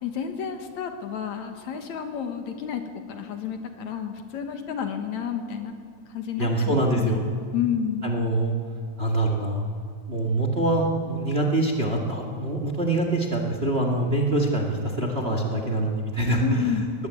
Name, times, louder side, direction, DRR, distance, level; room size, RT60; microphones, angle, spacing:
voice 1, 0.0-2.8 3.1-5.7 6.1-7.2 7.5-8.1 16.4-16.9, left 8 dB, 65° left, 6 dB, 2.6 m, -30 dB
voice 2, 6.4-7.2 8.0-8.6 9.0-9.6 10.1-16.8, right 2 dB, 25° right, 3 dB, 1.7 m, -24 dB
20.5 x 19.5 x 8.4 m, 2.1 s
omnidirectional pair, 3.6 m